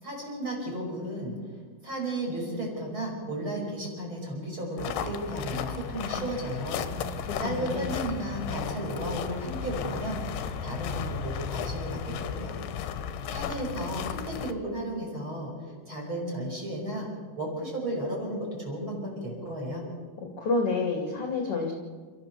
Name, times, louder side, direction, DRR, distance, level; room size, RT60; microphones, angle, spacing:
voice 1, 0.0-1.4 1.8-6.8 7.0-12.5 13.3-15.5 15.9-17.1 17.4-19.8, right 1 dB, 25° right, -1 dB, 5.8 m, -34 dB
sound 1, 4.8-14.5, left 7 dB, 70° left, 2.7 m, -34 dB
voice 2, 6.9-7.9 20.4-21.7, left 3 dB, 40° left, 1 dB, 2.4 m, -29 dB
29.5 x 14.5 x 6.9 m, 1.5 s
omnidirectional pair, 5.3 m